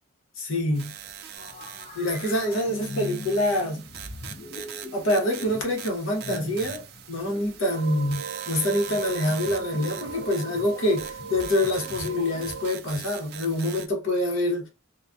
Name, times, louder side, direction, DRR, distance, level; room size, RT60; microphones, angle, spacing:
voice 1, 0.4-0.9 1.9-3.8 4.9-14.7, left 1 dB, 70° left, 0.9 m, -26 dB
sound 1, 0.7-13.9, right 9 dB, 50° right, 0.3 m, -42 dB
sound 2, 1.4-13.2, left 3 dB, 35° left, 0.3 m, -41 dB
sound 3, 7.6-12.7, right 6 dB, 65° right, 0.7 m, -38 dB
2.2 x 2.2 x 2.5 m
head